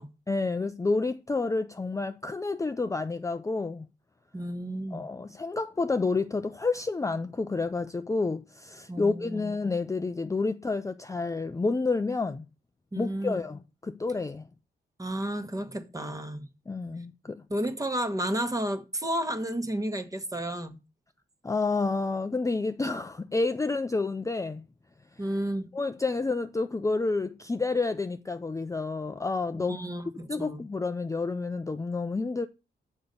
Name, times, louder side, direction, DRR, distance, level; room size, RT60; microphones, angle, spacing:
voice 1, 0.3-3.9 4.9-12.5 13.0-14.5 16.7-17.4 21.4-24.6 25.7-29.8 30.3-32.5, left 3 dB, 15° left, 0.5 m, -29 dB
voice 2, 4.3-5.1 8.9-9.6 12.9-13.4 15.0-16.5 17.5-20.8 25.2-25.7 29.5-30.6, right 1 dB, 20° right, 1.3 m, -32 dB
7.0 x 5.3 x 6.7 m
cardioid pair, 95°, 19 cm